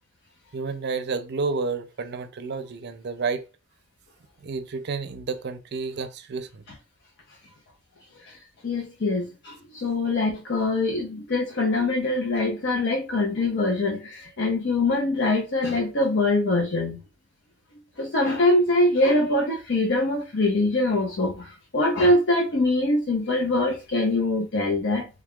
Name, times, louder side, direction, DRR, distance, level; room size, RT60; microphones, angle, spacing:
voice 1, 0.5-3.4 4.4-6.6, right 4 dB, 55° right, 0.5 m, -30 dB
voice 2, 8.6-17.0 18.0-21.5 21.7-25.1, left 2 dB, 60° left, 0.6 m, -23 dB
3.4 x 2.3 x 3.5 m
head